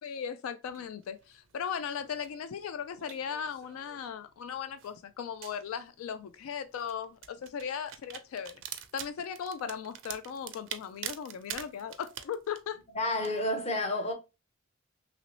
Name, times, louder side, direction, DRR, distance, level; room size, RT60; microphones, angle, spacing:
voice 1, 0.0-8.6 8.9-12.8, left 7 dB, 90° left, 0.3 m, -37 dB
sound 1, 0.6-13.4, right 10 dB, 65° right, 0.4 m, -46 dB
voice 2, 12.9-14.1, left 1 dB, 30° left, 0.6 m, -30 dB
2.9 x 2.7 x 2.9 m
head